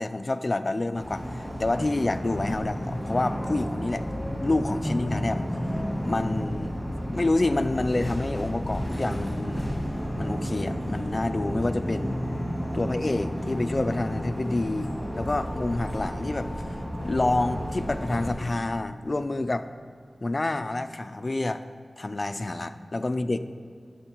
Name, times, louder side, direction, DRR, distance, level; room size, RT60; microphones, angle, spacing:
voice 1, 0.0-4.0 4.4-5.5 6.0-6.8 7.1-9.7 10.2-12.2 12.7-14.9 15.2-16.8 17.0-19.7 20.2-21.6 22.0-23.4, left 2 dB, 40° left, 11 dB, 0.3 m, -28 dB
sound 1, 0.9-18.3, equal, 10° right, 2.1 m, -32 dB
12.0 x 7.1 x 3.0 m, 2.2 s
wide cardioid pair, 90°, 0 cm